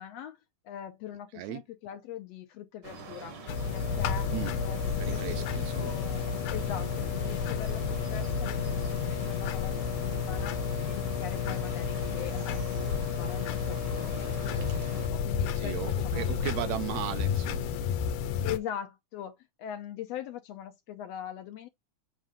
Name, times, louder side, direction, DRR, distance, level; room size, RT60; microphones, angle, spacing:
voice 1, 0.0-3.4 3.6-4.3 4.6-5.5 5.8-10.6 10.8-16.5 18.4-21.7, left 10 dB, 75° left, 1.7 m, -42 dB
sound 1, 2.8-15.1, right 4 dB, 55° right, 1.3 m, -45 dB
sound 2, 3.5-18.6, left 7 dB, 90° left, 2.2 m, -31 dB
voice 2, 5.0-6.0 15.5-17.9, right 15 dB, 80° right, 1.8 m, -36 dB
7.4 x 2.6 x 4.9 m
omnidirectional pair, 3.4 m